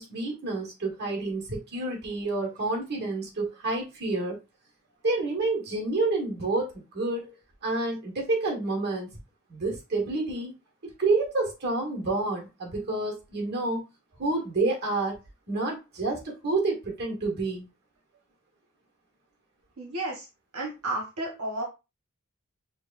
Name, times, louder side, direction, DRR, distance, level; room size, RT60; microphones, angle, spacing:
voice 1, 0.0-4.4 5.0-7.3 7.6-9.1 9.5-10.5 10.8-13.8 14.2-15.2 15.5-17.7, right 2 dB, 50° right, 0 dB, 1.5 m, -29 dB
voice 2, 19.8-20.3 20.5-21.6, right 2 dB, 75° right, -1 dB, 1.2 m, -32 dB
6.2 x 2.3 x 2.5 m, 0.27 s
head